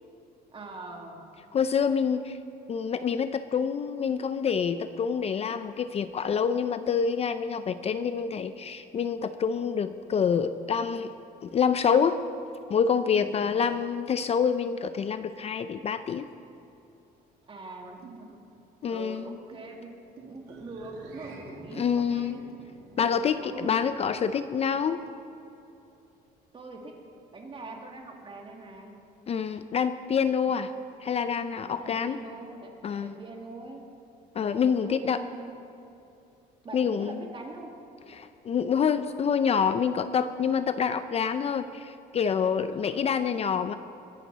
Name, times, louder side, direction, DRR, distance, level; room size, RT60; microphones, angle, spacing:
voice 1, 0.5-1.3 13.1-13.7 17.5-18.4 18.9-19.9 20.2-22.5 23.0-24.0 26.5-27.0 27.3-29.0 30.4-30.8 31.5-32.7 33.0-33.9 34.4-35.6 36.6-37.7 42.7-43.0, right 2 dB, 30° right, 2 dB, 2.2 m, -43 dB
voice 2, 1.5-2.4 2.7-11.1 11.4-12.2 12.7-16.2 18.8-19.4 21.7-22.4 23.0-25.0 29.3-30.7 31.0-32.2 32.8-33.1 34.3-35.2 36.7-37.2 38.1-43.7, left 7 dB, 40° left, 11 dB, 0.5 m, -27 dB
sound 1, 18.0-18.2 18.8-18.9 19.5-19.6 20.2-20.4 21.3-21.5 22.5-22.7 23.3-23.5 24.2-24.3 25.1-25.2, right 8 dB, 70° right, 1.8 m, -50 dB
sound 2, 20.4-25.0, right 2 dB, 90° right, 2.6 m, -49 dB
22.5 x 11.0 x 4.0 m, 2.8 s
cardioid pair, 110°, 17 cm